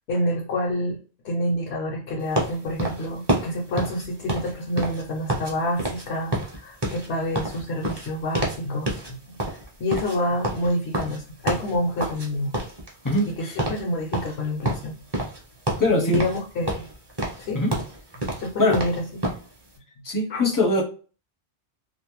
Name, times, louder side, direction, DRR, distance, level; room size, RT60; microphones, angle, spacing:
voice 1, 0.1-1.0 1.2-9.4 9.8-12.5 13.4-14.9 15.9-16.9 17.4-17.6 18.4-19.2 20.3-20.4, left 1 dB, 70° left, -2 dB, 0.9 m, -28 dB
sound 1, 2.3-5.5 5.8-6.1 6.3-8.6 8.9-9.1 9.4-12.3 12.5-13.3 13.6-13.8 14.1-15.4 15.7-16.4 16.7-19.4, right 1 dB, 30° right, 0.6 m, -28 dB
voice 2, 13.0-13.6 15.8-16.2 17.5-17.7 18.6-18.8 20.0-20.8, left 2 dB, 25° left, 0 dB, 0.5 m, -22 dB
2.5 x 2.0 x 2.9 m, 0.37 s
omnidirectional pair, 1.1 m